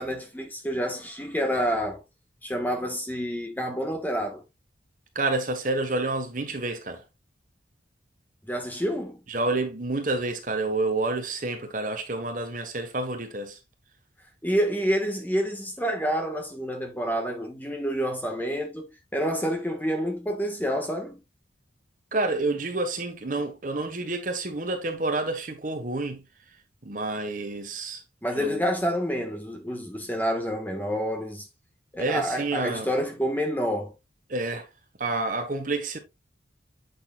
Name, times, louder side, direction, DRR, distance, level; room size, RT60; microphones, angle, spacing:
voice 1, 0.0-2.0 2.4-4.4 8.5-9.2 14.4-21.2 28.2-31.5 31.9-33.9, equal, 10° left, 1.5 m, -28 dB
voice 2, 5.1-7.0 9.3-13.6 22.1-26.2 26.8-28.0 28.3-28.6 32.0-32.9 34.3-34.7 35.0-36.0, right 2 dB, 45° right, 1.3 m, -29 dB
8.3 x 6.7 x 2.4 m
head